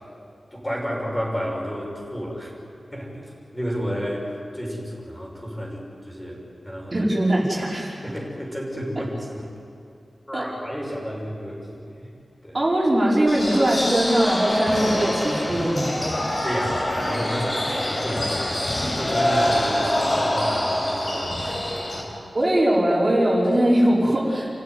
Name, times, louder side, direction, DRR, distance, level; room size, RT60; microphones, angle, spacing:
voice 1, 0.5-2.5 2.9-7.0 8.0-9.4 10.3-12.1 12.4-12.6 16.4-18.6 18.9-22.1, equal, 10° left, -2 dB, 6.3 m, -31 dB
voice 2, 6.9-7.9 10.3-10.4 12.5-16.1 22.3-24.5, right 1 dB, 35° right, -5 dB, 4.9 m, -20 dB
sound 1, 13.3-22.0, left 1 dB, 40° left, 5.1 m, -25 dB
29.5 x 16.0 x 9.5 m, 2.5 s
wide cardioid pair, 115°, 0 cm